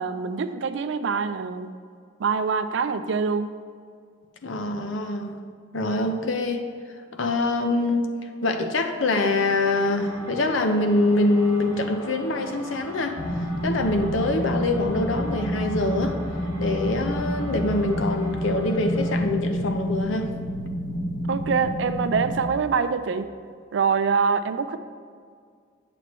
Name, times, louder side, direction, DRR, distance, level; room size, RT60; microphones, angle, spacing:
voice 1, 0.0-1.7 2.2-3.6 21.3-23.3 23.7-24.8, right 5 dB, 70° right, 11 dB, 0.4 m, -25 dB
voice 2, 4.4-5.4 5.7-6.7 7.2-8.1 8.4-13.2 13.6-16.2 16.6-20.3, left 2 dB, 80° left, 5 dB, 0.7 m, -24 dB
sound 1, 9.4-19.3, equal, 20° left, 2.0 m, -40 dB
sound 2, 13.2-22.5, equal, 50° left, 0.9 m, -29 dB
7.8 x 7.4 x 3.1 m, 2.1 s
head